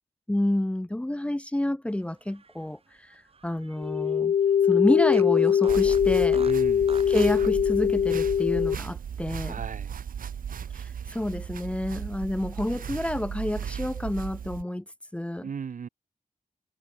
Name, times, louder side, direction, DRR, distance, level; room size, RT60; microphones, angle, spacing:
voice 1, 0.3-4.3 4.7-6.4 7.1-9.6 10.7-14.8 15.1-15.5, left 1 dB, 10° left, 1.4 m, -29 dB
Fart, 2.1-4.2 4.5-4.6 5.1-7.4, right 4 dB, 45° right, 7.0 m, -45 dB
sound 1, 3.8-8.7, left 8 dB, 60° left, 0.4 m, -22 dB
sound 2, 5.7-14.6, right 8 dB, 85° right, 1.7 m, -36 dB
voice 2, 6.4-7.0 9.4-10.0 15.4-15.9, right 6 dB, 70° right, 5.2 m, -36 dB
wide cardioid pair, 115°, 14 cm